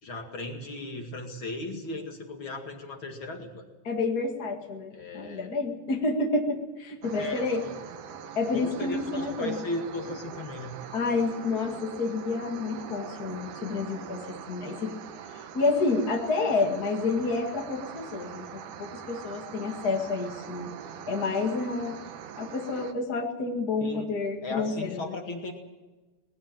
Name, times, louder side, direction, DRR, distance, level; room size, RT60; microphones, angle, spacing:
voice 1, 0.0-3.6 4.9-5.5 7.1-7.5 8.5-10.7 23.8-24.0 24.4-25.5, left 2 dB, 45° left, 3 dB, 1.7 m, -36 dB
voice 2, 3.8-9.6 10.9-14.9 15.5-18.4 18.8-20.7 21.1-22.0 22.4-25.1, left 3 dB, 60° left, 2 dB, 0.9 m, -29 dB
sound 1, 7.0-22.9, right 8 dB, 75° right, 1.9 m, -43 dB
20.0 x 16.0 x 9.0 m, 1.2 s
omnidirectional pair, 5.3 m